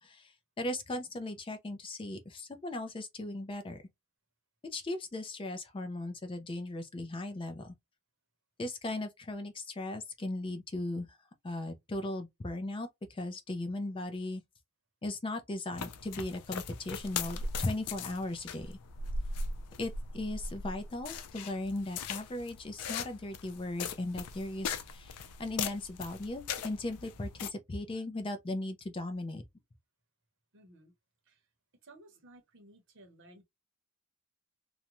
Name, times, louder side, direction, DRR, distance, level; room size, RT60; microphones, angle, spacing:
voice 1, 0.0-3.8 4.7-7.7 8.6-11.2 11.4-14.4 15.0-18.8 19.8-29.4, left 2 dB, 25° left, 0.4 m, -37 dB
sound 1, 15.7-27.5, left 5 dB, 90° left, 0.4 m, -39 dB
voice 2, 30.5-30.9 31.3-31.4 31.8-33.4, right 1 dB, 55° right, 0.8 m, -57 dB
2.4 x 2.1 x 2.9 m
head